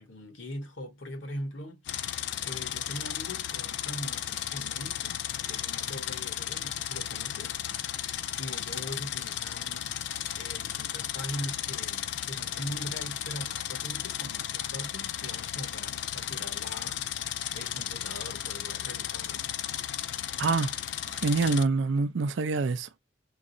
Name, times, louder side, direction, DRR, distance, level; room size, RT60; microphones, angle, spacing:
voice 1, 0.0-2.1 2.4-5.2 5.4-8.0 8.4-19.5, equal, 80° left, 1.1 m, -41 dB
sound 1, 1.9-21.6, left 11 dB, 60° left, 0.3 m, -34 dB
voice 2, 20.4-20.7 21.2-22.9, right 4 dB, 75° right, 0.4 m, -26 dB
4.6 x 2.0 x 2.5 m
head